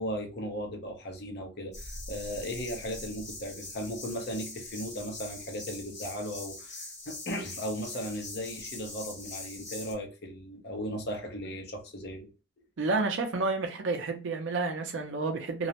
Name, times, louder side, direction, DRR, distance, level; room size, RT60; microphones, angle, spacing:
voice 1, 0.0-12.3, equal, 60° left, 0.7 m, -37 dB
sound 1, 1.7-9.9, left 2 dB, 40° left, 1.0 m, -43 dB
voice 2, 12.8-15.7, right 3 dB, 75° right, 0.5 m, -30 dB
2.3 x 2.0 x 2.8 m
head